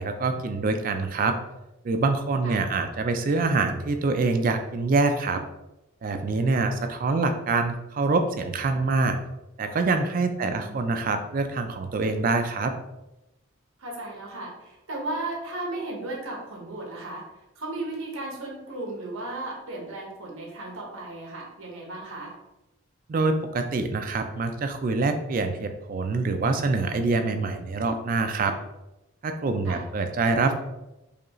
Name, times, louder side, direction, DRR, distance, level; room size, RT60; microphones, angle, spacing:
voice 1, 0.0-1.4 1.8-5.4 6.0-9.2 9.6-12.7 23.1-28.5 29.2-30.5, right 3 dB, 40° right, 7 dB, 0.3 m, -25 dB
voice 2, 10.4-10.9 13.8-17.2 17.6-22.3 29.6-29.8, right 2 dB, 70° right, -1 dB, 1.0 m, -35 dB
4.9 x 2.3 x 3.0 m, 0.95 s
head